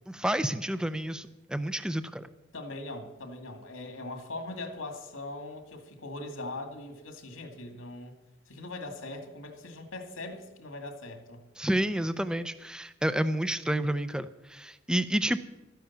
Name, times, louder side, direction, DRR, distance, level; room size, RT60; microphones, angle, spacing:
voice 1, 0.1-2.3 11.6-15.4, right 1 dB, 5° right, 12 dB, 0.5 m, -30 dB
voice 2, 2.5-8.2 8.5-11.4, left 2 dB, 90° left, 5 dB, 2.3 m, -41 dB
13.0 x 10.5 x 7.2 m, 1.0 s
head